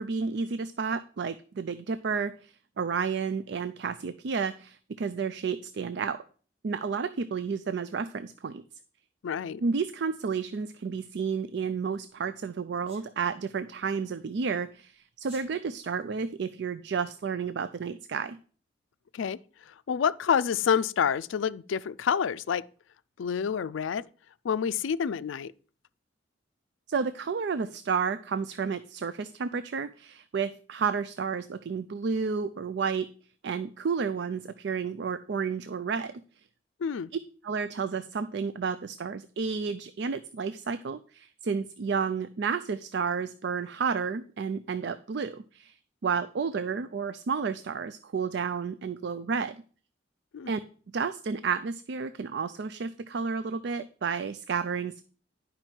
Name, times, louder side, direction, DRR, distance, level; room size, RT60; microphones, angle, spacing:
voice 1, 0.0-6.2 6.6-8.6 9.6-18.4 26.9-33.1 33.4-36.2 37.4-45.8 46.0-49.6 50.5-50.6 50.9-55.0, right 5 dB, 60° right, 0.4 m, -31 dB
voice 2, 9.2-9.6 19.1-19.4 19.7-22.6 23.2-24.0 24.4-25.5 36.8-37.1 50.3-50.5, left 7 dB, 80° left, 0.4 m, -28 dB
Sneeze, 12.9-13.1 15.2-15.5, right 1 dB, 30° right, 2.6 m, -50 dB
10.5 x 5.2 x 4.4 m
head